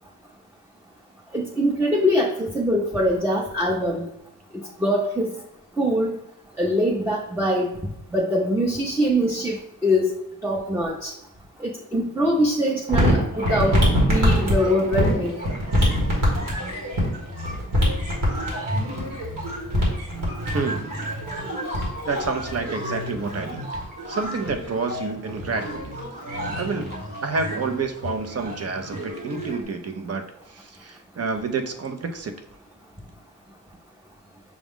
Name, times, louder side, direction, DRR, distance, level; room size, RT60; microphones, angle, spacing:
voice 1, 1.3-4.0 4.5-5.3 5.8-6.1 6.6-7.7 8.1-9.6 9.8-10.1 10.4-11.1 11.6-13.8 14.1-15.4, equal, 5° right, -3 dB, 0.7 m, -23 dB
sound 1, 12.9-29.6, equal, 75° right, 1.7 m, -26 dB
voice 2, 20.5-20.9 22.0-23.7 24.1-26.0 26.5-26.9 27.2-32.3, right 4 dB, 45° right, 6 dB, 0.7 m, -29 dB
6.1 x 2.3 x 3.6 m, 0.83 s
wide cardioid pair, 85°, 33 cm